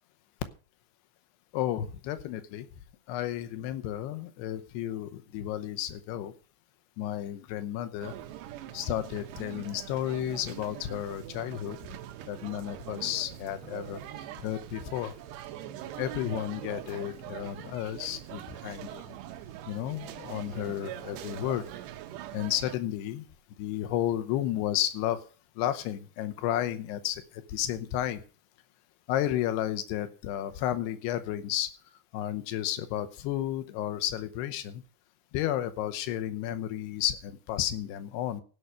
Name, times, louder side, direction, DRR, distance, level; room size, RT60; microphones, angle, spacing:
voice 1, 1.5-2.7 3.1-6.3 7.0-8.2 8.7-11.8 12.3-14.0 14.4-15.1 16.0-19.2 19.7-21.7 22.3-23.3 23.6-25.2 25.6-28.2 29.1-31.7 32.1-34.8 35.3-38.4, left 12 dB, 80° left, 10 dB, 2.9 m, -32 dB
sound 1, 8.0-22.8, right 12 dB, 90° right, 2.9 m, -43 dB
16.5 x 5.7 x 6.3 m, 0.39 s
omnidirectional pair, 4.8 m